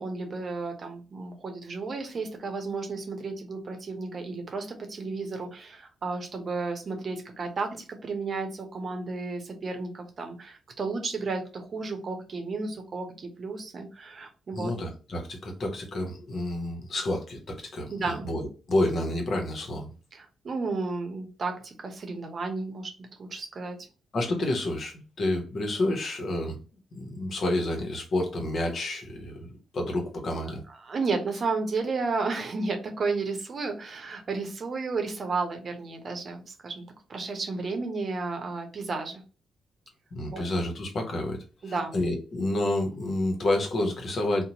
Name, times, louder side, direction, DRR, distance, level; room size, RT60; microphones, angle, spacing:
voice 1, 0.0-14.7 17.9-18.3 20.1-23.8 30.9-36.8 37.1-39.2 40.3-40.4 41.6-42.0, right 3 dB, 55° right, 4 dB, 0.7 m, -33 dB
voice 2, 14.5-19.9 24.1-26.6 26.9-30.6 40.1-44.4, left 1 dB, 60° left, 2 dB, 0.8 m, -29 dB
2.8 x 2.1 x 2.8 m, 0.36 s
supercardioid pair, 45°, 0 cm